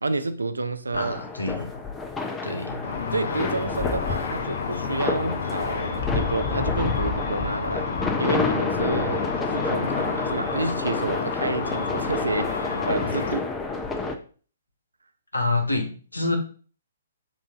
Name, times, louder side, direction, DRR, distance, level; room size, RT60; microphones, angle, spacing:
voice 1, 0.0-1.2 3.1-7.9 8.2-13.5, right 3 dB, 80° right, 0.4 m, -29 dB
voice 2, 0.9-1.8 2.4-2.8 13.9-14.1 15.3-16.4, left 2 dB, 90° left, 0.9 m, -27 dB
sound 1, 0.9-14.1, left 4 dB, 15° left, 0.5 m, -29 dB
Car / Traffic noise roadway noise / Engine, 2.8-13.3, left 5 dB, 55° left, 0.8 m, -31 dB
7.4 x 2.6 x 2.7 m
figure-of-eight pair, 125°, 0 cm